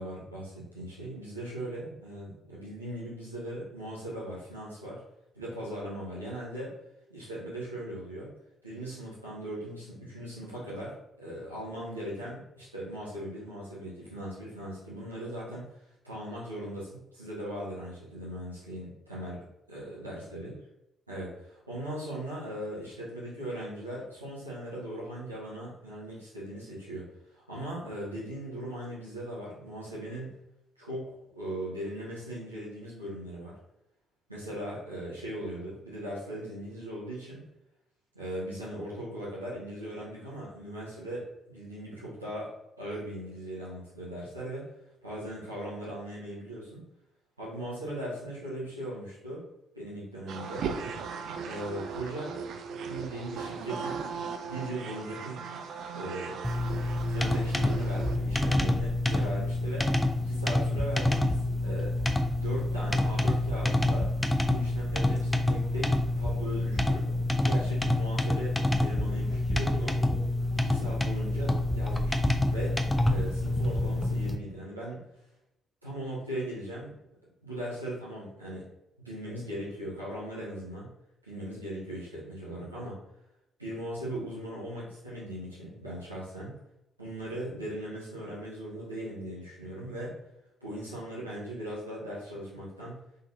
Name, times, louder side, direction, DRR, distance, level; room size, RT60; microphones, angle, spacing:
voice 1, 0.0-5.0 5.3-6.7 7.1-8.3 8.6-15.7 16.0-20.5 21.1-30.3 30.8-33.5 34.3-37.4 38.1-42.5 42.8-44.7 45.0-46.8 47.4-49.4 49.7-50.7 51.5-52.4 52.7-54.0 54.4-55.5 55.9-56.4 57.1-61.9 62.4-64.1 64.4-67.0 67.4-70.0 70.5-75.1 75.8-76.9 77.4-78.7 79.0-80.9 81.2-83.0 83.6-86.5 87.0-90.1 90.6-93.0, right 1 dB, 90° right, -9 dB, 1.0 m, -39 dB
sound 1, 50.3-58.2, right 6 dB, 55° right, 0.3 m, -38 dB
sound 2, 56.4-74.4, left 1 dB, 15° left, 0.5 m, -27 dB
3.7 x 3.7 x 2.6 m, 0.87 s
figure-of-eight pair, 40°, 0 cm